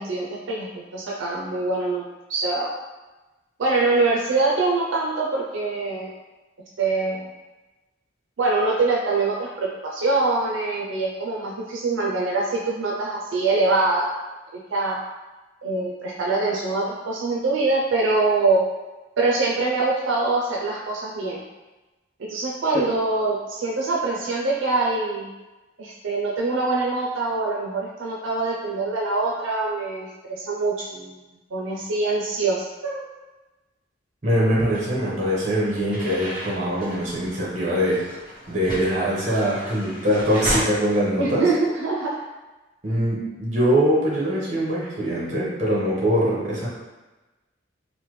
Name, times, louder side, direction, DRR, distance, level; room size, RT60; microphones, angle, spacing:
voice 1, 0.0-2.0 2.3-2.7 3.6-6.1 6.8-7.3 8.4-14.1 14.5-15.0 15.6-18.6 19.2-21.4 22.2-25.3 25.8-31.2 31.5-33.0 41.2-42.2, right 3 dB, 80° right, -3 dB, 0.4 m, -24 dB
voice 2, 34.2-38.0 38.5-41.4 42.8-46.7, equal, 35° right, -6 dB, 0.9 m, -22 dB
sound 1, 34.7-40.6, equal, 25° left, 1.0 m, -35 dB
3.2 x 2.1 x 3.1 m, 1.1 s
head